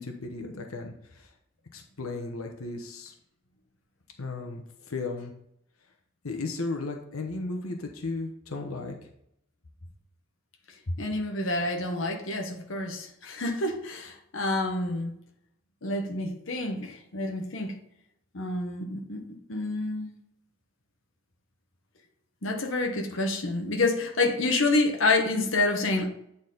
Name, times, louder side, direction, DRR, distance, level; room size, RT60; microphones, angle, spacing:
voice 1, 0.0-1.3 1.7-3.1 4.2-5.3 6.2-9.0, left 3 dB, 85° left, 3 dB, 1.0 m, -35 dB
voice 2, 11.0-15.1 15.8-17.7 18.3-20.1 22.4-26.1, left 2 dB, 65° left, 3 dB, 1.0 m, -28 dB
8.8 x 4.1 x 3.9 m, 0.74 s
head